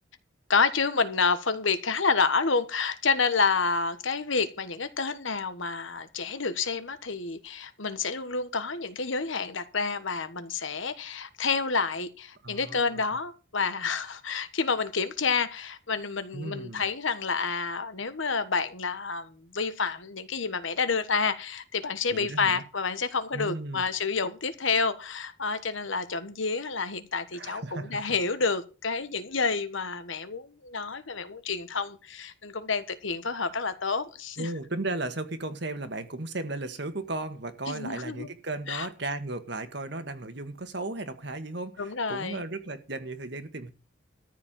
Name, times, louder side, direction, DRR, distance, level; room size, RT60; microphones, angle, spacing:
voice 1, 0.5-34.5 37.7-38.3 38.7-38.9 41.8-42.4, left 4 dB, 70° left, 1.3 m, -29 dB
voice 2, 12.4-13.0 16.3-16.9 22.1-22.6 23.3-23.8 27.3-28.0 34.4-43.7, right 2 dB, 55° right, 1.6 m, -35 dB
14.0 x 4.8 x 8.8 m
head